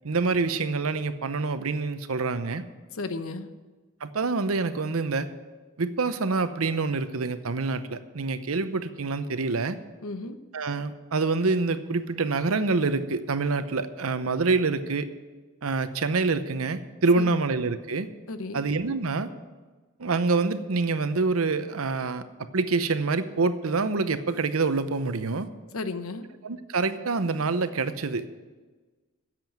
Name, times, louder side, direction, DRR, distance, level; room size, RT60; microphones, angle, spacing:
voice 1, 0.0-2.6 4.0-5.3 5.8-9.8 10.5-15.1 15.6-18.1 18.5-19.3 20.0-22.2 22.5-25.5 26.4-28.3, right 3 dB, 85° right, 11 dB, 0.8 m, -26 dB
voice 2, 2.9-3.5 10.0-10.4 17.2-17.4 18.3-18.6 25.7-26.3, left 3 dB, 85° left, 10 dB, 0.9 m, -34 dB
10.5 x 7.6 x 9.0 m, 1.3 s
head